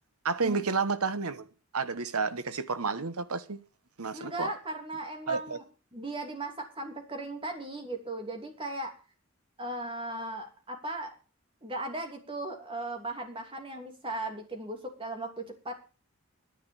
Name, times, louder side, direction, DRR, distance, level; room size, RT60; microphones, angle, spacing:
voice 1, 0.2-1.5 1.7-3.6 4.0-4.5 5.3-5.6, right 4 dB, 90° right, 1.2 m, -30 dB
voice 2, 4.1-5.6 5.9-8.9 9.6-11.1 11.6-15.8, right 2 dB, 25° right, 2.9 m, -37 dB
11.5 x 10.5 x 7.0 m
head